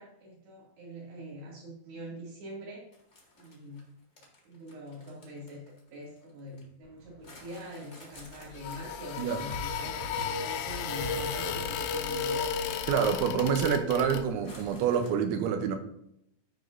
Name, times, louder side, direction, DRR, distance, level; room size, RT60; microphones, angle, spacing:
voice 1, 0.0-2.9 3.3-3.8 4.4-5.6 5.9-12.9, equal, 60° right, -4 dB, 4.5 m, -44 dB
sound 1, 2.9-6.6 7.2-13.4 13.7-13.8 14.4-15.1, left 2 dB, 60° left, 0.7 m, -54 dB
sound 2, 6.8-7.3 9.5-12.2, equal, 45° right, 4.2 m, -43 dB
sound 3, 8.2-14.6, left 6 dB, 85° left, 2.3 m, -34 dB
voice 2, 12.9-15.8, right 7 dB, 85° right, 7 dB, 3.1 m, -27 dB
14.0 x 5.0 x 2.7 m, 0.75 s
omnidirectional pair, 5.6 m